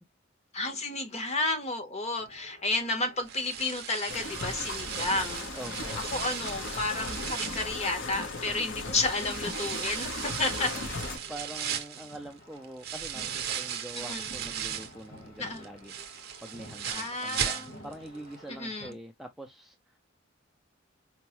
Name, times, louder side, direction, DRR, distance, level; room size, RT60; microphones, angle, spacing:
voice 1, 0.5-5.5 6.1-10.7 13.9-14.3 15.4-15.6 16.9-17.8 18.6-19.0, left 2 dB, 35° left, 0.9 m, -32 dB
sound 1, 2.2-18.9, equal, 50° left, 1.8 m, -53 dB
sound 2, 3.3-8.5 9.0-15.0 15.4-18.1 18.3-18.4 18.9-19.0, right 9 dB, 55° right, 0.6 m, -37 dB
sound 3, 4.1-11.2, left 3 dB, 65° left, 0.8 m, -37 dB
voice 2, 5.5-6.0 8.4-8.7 11.3-20.0, right 1 dB, ahead, 0.3 m, -45 dB
4.4 x 2.0 x 2.9 m
head